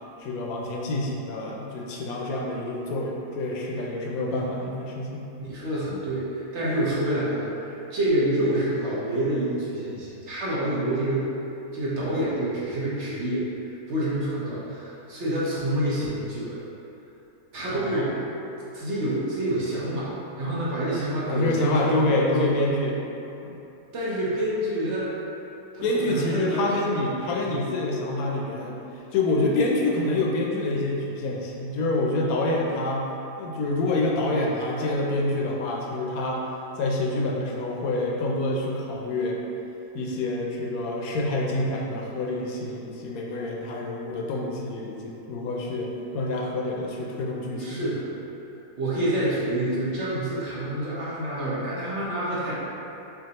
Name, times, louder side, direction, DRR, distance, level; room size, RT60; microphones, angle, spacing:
voice 1, 0.2-5.3 17.7-18.1 21.3-23.0 23.4-23.6 25.8-28.8 29.1-33.1 33.4-36.4 36.8-39.4 39.9-47.8, left 2 dB, 75° left, -2 dB, 1.0 m, -27 dB
voice 2, 4.3-4.7 5.4-11.3 11.7-16.6 17.5-18.2 18.7-22.5 23.9-25.1 25.7-26.8 27.4-27.5 47.6-48.0 48.8-52.5, right 1 dB, 55° right, -8 dB, 1.0 m, -27 dB
5.7 x 2.6 x 2.9 m, 2.9 s
omnidirectional pair, 1.6 m